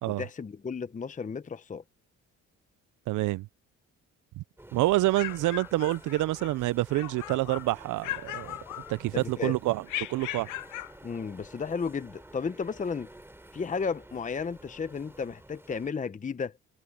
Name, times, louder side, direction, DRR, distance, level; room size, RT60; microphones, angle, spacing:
voice 1, 0.1-1.8 9.1-9.6 11.0-13.1 13.5-16.5, left 5 dB, 25° left, 0.8 m, -33 dB
voice 2, 3.1-3.5 4.4-4.5 4.7-8.6 8.9-9.8 10.1-10.5, right 17 dB, 80° right, 0.6 m, -27 dB
sound 1, 4.6-15.9, right 1 dB, 10° right, 3.4 m, -51 dB
African Grey parrot imitating a dog, 4.9-6.6 6.9-7.7 8.0-9.3 9.9-11.0, left 15 dB, 85° left, 0.8 m, -38 dB
cardioid pair, 90°, 30 cm